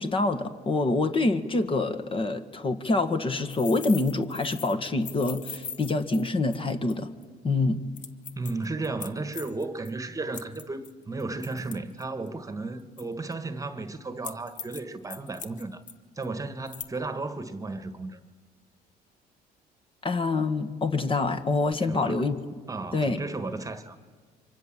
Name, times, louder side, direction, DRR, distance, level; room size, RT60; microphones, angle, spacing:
voice 1, 0.0-7.1 7.4-7.8 20.0-22.4 22.9-23.2, left 3 dB, 30° left, 1.7 m, -26 dB
sound 1, 3.5-6.9 7.2-7.3 8.0-9.9 10.3-12.3 13.0-13.3 14.2-14.8 15.1-15.9 16.2-16.3 16.7-16.8, left 6 dB, 50° left, 1.3 m, -41 dB
voice 2, 8.4-15.8 16.2-18.2 21.8-22.2 22.7-24.0, right 3 dB, 20° right, 1.5 m, -34 dB
28.5 x 25.0 x 7.6 m
cardioid pair, 110°, 17 cm